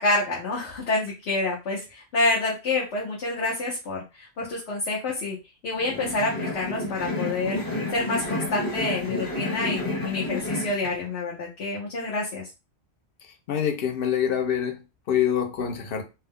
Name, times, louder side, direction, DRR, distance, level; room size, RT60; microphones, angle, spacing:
voice 1, 0.0-5.4 5.6-7.6 7.9-12.5, left 2 dB, 75° left, 1.1 m, -28 dB
sound 1, 5.7-10.9, left 2 dB, 25° left, 0.5 m, -30 dB
voice 2, 13.5-14.8 15.1-16.0, left 9 dB, 60° left, 0.8 m, -25 dB
2.7 x 2.1 x 3.5 m
omnidirectional pair, 1.1 m